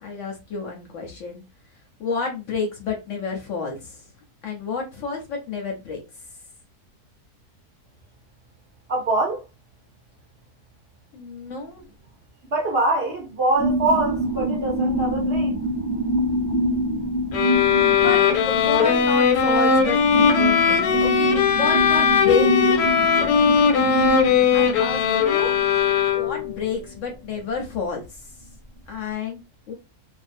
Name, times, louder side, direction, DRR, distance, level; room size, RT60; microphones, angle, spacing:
voice 1, 0.0-1.4 2.0-4.0 4.4-6.0 11.1-11.9 17.9-22.8 24.5-25.5 26.1-28.2 28.9-29.4 29.7-29.8, left 4 dB, 65° left, 0.8 m, -29 dB
voice 2, 8.9-9.4 12.4-15.5, right 2 dB, 60° right, 0.6 m, -24 dB
sound 1, 13.6-26.6 27.0-27.1, equal, 15° left, 0.4 m, -26 dB
sound 2, 17.3-26.5, left 6 dB, 90° left, 1.1 m, -19 dB
2.5 x 2.0 x 2.5 m
omnidirectional pair, 1.7 m